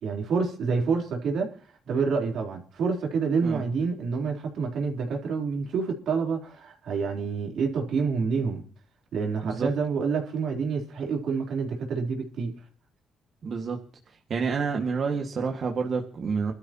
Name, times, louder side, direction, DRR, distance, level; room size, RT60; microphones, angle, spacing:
voice 1, 0.0-1.5 1.9-8.6 9.1-12.5, right 5 dB, 75° right, 3.7 m, -28 dB
voice 2, 13.4-13.8 14.3-16.5, right 5 dB, 50° right, 2.0 m, -28 dB
25.0 x 12.5 x 3.0 m
cardioid pair, 90°, 0 cm